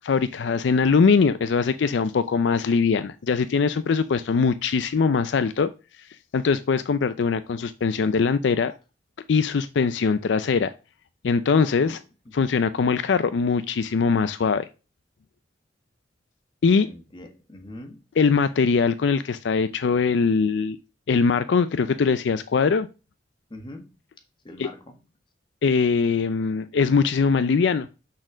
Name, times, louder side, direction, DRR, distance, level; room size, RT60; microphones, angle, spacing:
voice 1, 0.0-5.7 6.3-8.7 9.3-10.7 11.2-12.0 12.3-14.7 16.6-16.9 18.2-20.8 21.1-22.9 24.6-24.7 25.6-27.9, left 5 dB, 70° left, 0.4 m, -21 dB
voice 2, 11.5-11.9 16.8-18.0 23.5-23.8 24.4-24.9, left 1 dB, 25° left, 1.5 m, -42 dB
6.3 x 4.3 x 6.1 m
head